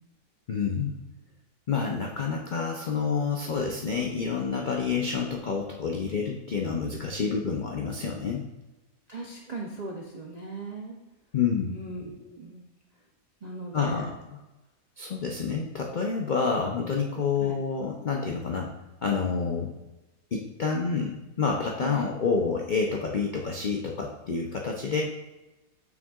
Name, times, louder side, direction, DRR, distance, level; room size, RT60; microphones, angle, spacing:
voice 1, 0.5-0.9 1.7-8.4 11.3-11.8 13.7-14.4 15.0-18.7 19.0-19.7 20.3-25.0, left 5 dB, 75° left, 0 dB, 0.4 m, -28 dB
voice 2, 9.1-11.0 11.7-12.7 13.4-14.1 17.4-17.6 21.8-22.0, right 3 dB, 60° right, -1 dB, 0.4 m, -38 dB
7.4 x 6.2 x 2.4 m, 1.1 s
omnidirectional pair, 1.7 m